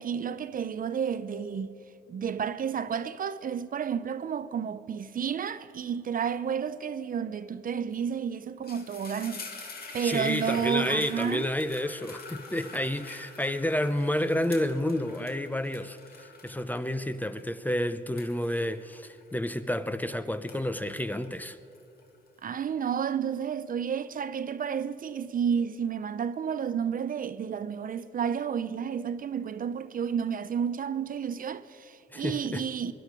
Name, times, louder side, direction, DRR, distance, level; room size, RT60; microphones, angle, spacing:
voice 1, 0.0-1.8 2.1-9.7 9.9-11.5 22.4-32.9, right 7 dB, 45° right, 0.6 m, -31 dB
sound 1, 7.9-8.1 8.4-20.0 20.3-22.3, left 4 dB, 50° left, 2.3 m, -46 dB
voice 2, 10.0-21.6 32.1-32.6, left 1 dB, 10° left, 0.6 m, -30 dB
22.5 x 11.5 x 4.8 m
cardioid pair, 90°, 20 cm